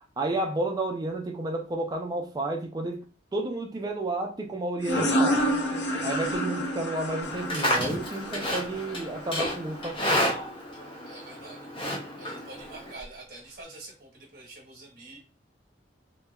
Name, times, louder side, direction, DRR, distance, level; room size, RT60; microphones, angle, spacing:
voice 1, 0.2-3.0 3.3-5.4 6.0-10.3, right 2 dB, 20° right, 2 dB, 0.3 m, -31 dB
sound 1, 4.8-10.2, equal, 85° left, 0.6 m, -29 dB
Livestock farm animals working animals, 7.2-12.9, equal, 30° left, 0.5 m, -31 dB
voice 2, 11.1-15.2, right 2 dB, 55° right, -3 dB, 1.0 m, -46 dB
3.0 x 2.1 x 2.3 m, 0.35 s
head